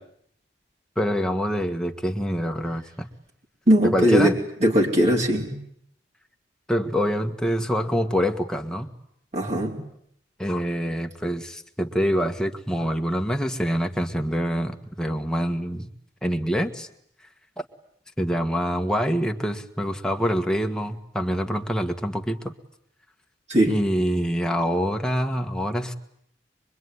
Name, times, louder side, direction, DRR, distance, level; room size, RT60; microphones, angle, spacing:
voice 1, 1.0-3.1 3.8-4.4 6.7-8.9 10.4-15.9 16.2-16.9 17.6-17.7 18.2-22.5 23.6-25.9, equal, 5° left, 3 dB, 1.7 m, -25 dB
voice 2, 3.7-4.3 4.6-5.5 9.3-9.7 23.5-23.7, right 1 dB, 40° right, -1 dB, 4.2 m, -19 dB
24.5 x 23.5 x 9.7 m, 0.71 s
head